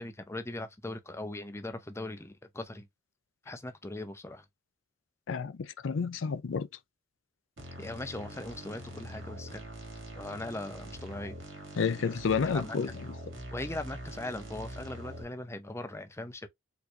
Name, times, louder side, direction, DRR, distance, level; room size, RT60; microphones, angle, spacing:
voice 1, 0.0-2.9 3.5-4.5 7.8-9.6 10.2-11.4 12.1-12.2 12.5-13.0 13.5-16.5, left 2 dB, 15° left, 0.6 m, -40 dB
voice 2, 5.3-6.7 11.8-12.9, left 5 dB, 70° left, 0.5 m, -30 dB
sound 1, 7.6-15.2, right 1 dB, 75° right, 1.8 m, -44 dB
4.5 x 2.9 x 2.4 m
head